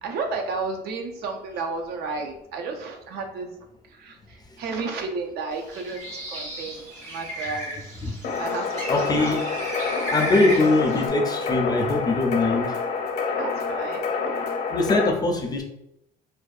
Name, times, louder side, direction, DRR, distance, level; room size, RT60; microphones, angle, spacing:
voice 1, 0.0-3.5 3.9-7.8 8.4-9.4 13.4-14.1, right 4 dB, 70° right, 3 dB, 0.5 m, -32 dB
Bird, 5.6-11.1, equal, 45° right, 1.0 m, -34 dB
sound 1, 8.2-15.1, left 5 dB, 70° left, 0.6 m, -28 dB
voice 2, 8.9-9.4 10.1-12.7 14.7-15.6, left 2 dB, 25° left, 2 dB, 0.4 m, -22 dB
2.5 x 2.2 x 2.3 m, 0.81 s
cardioid pair, 110°, 17 cm